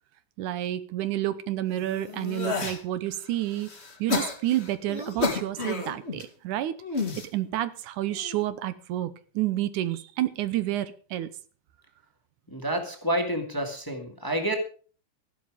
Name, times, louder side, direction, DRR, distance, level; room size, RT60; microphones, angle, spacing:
voice 1, 0.4-3.7 4.0-6.7 7.3-11.3, right 14 dB, 80° right, 15 dB, 2.3 m, -29 dB
sound 1, 1.7-2.8 3.3-6.2 6.8-7.3 8.1-8.5, left 4 dB, 25° left, 2.0 m, -31 dB
voice 2, 12.5-14.5, right 1 dB, 10° left, 5 dB, 1.8 m, -29 dB
13.5 x 11.5 x 5.0 m, 0.40 s
omnidirectional pair, 3.6 m